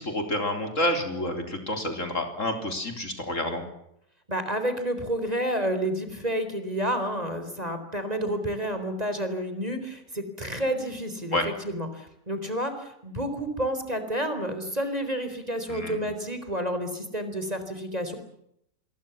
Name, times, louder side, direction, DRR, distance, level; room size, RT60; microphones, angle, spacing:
voice 1, 0.0-3.6 11.3-11.5 15.7-16.1, left 1 dB, 50° left, 5 dB, 4.2 m, -29 dB
voice 2, 4.3-18.2, equal, 25° right, 8 dB, 4.2 m, -30 dB
27.0 x 22.0 x 7.2 m, 0.75 s
omnidirectional pair, 1.8 m